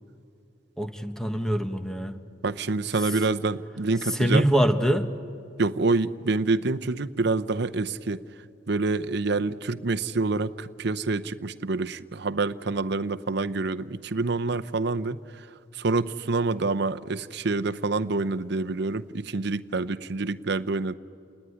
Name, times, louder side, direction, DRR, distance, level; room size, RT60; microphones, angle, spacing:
voice 1, 0.8-2.2 4.2-5.1, equal, 5° left, 7 dB, 1.2 m, -24 dB
voice 2, 2.4-4.5 5.6-8.2 8.7-15.5 15.7-20.9, right 3 dB, 65° right, 11 dB, 0.7 m, -27 dB
30.0 x 19.5 x 9.9 m, 2.6 s
head